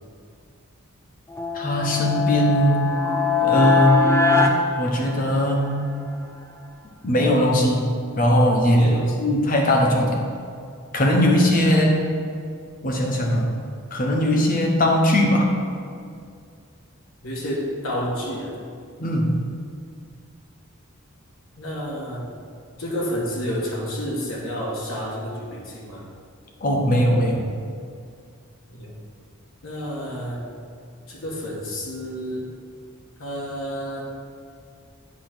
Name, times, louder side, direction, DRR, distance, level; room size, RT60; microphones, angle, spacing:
sound 1, 1.3-5.7, left 4 dB, 10° left, 0.3 m, -21 dB
voice 1, 1.5-2.8 3.4-4.4 4.8-5.9 7.0-7.9 8.2-10.2 10.9-12.1 12.8-13.5 13.9-15.5 19.0-19.4 26.6-27.4, equal, 40° left, 0 dB, 0.9 m, -20 dB
voice 2, 8.7-9.3 11.3-11.9 17.2-18.5 21.6-22.3 22.8-26.0 28.7-28.9 29.6-30.4 31.1-32.5 33.2-34.0, equal, 70° left, -4 dB, 1.2 m, -30 dB
8.6 x 3.1 x 6.0 m, 2.3 s
head